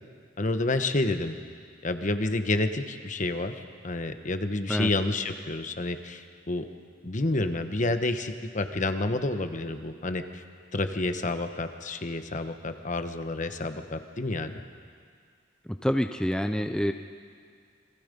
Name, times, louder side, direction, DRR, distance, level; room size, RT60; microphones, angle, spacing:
voice 1, 0.4-1.4 1.8-6.6 7.0-10.4 10.7-14.6, left 2 dB, 45° left, 8 dB, 1.1 m, -29 dB
voice 2, 15.8-16.9, equal, 5° left, 6 dB, 0.6 m, -26 dB
28.0 x 21.5 x 5.3 m, 2.1 s
head